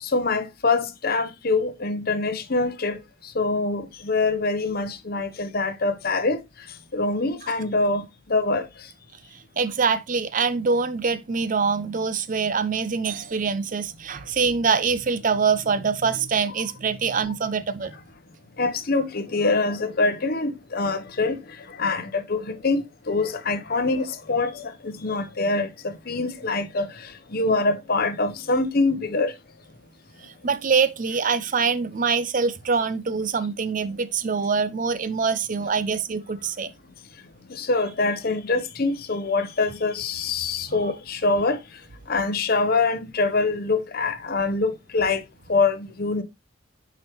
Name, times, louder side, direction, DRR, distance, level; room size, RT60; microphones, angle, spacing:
voice 1, 0.0-3.0 3.3-6.4 6.9-8.0 8.3-8.7 18.6-21.4 21.8-22.8 23.1-26.9 27.3-29.3 37.5-41.6 42.1-45.2 45.5-46.2, left 3 dB, 50° left, 0.9 m, -24 dB
voice 2, 9.6-17.9 30.2-36.7 40.7-40.8, right 5 dB, 40° right, 0.5 m, -24 dB
9.2 x 4.9 x 3.0 m
head